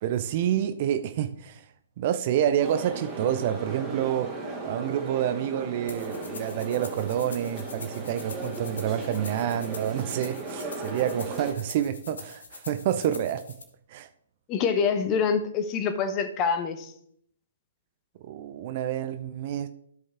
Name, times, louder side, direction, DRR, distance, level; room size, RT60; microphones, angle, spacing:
voice 1, 0.0-1.6 2.0-4.4 4.6-13.5 13.9-14.1 18.2-19.7, right 10 dB, 35° right, 0.5 m, -28 dB
sound 1, 2.6-11.5, right 3 dB, 20° right, 1.9 m, -37 dB
sound 2, 5.9-13.6, left 4 dB, 60° left, 1.4 m, -45 dB
voice 2, 14.5-16.9, left 6 dB, 25° left, 0.9 m, -26 dB
13.0 x 5.4 x 3.5 m
figure-of-eight pair, 125°, 0 cm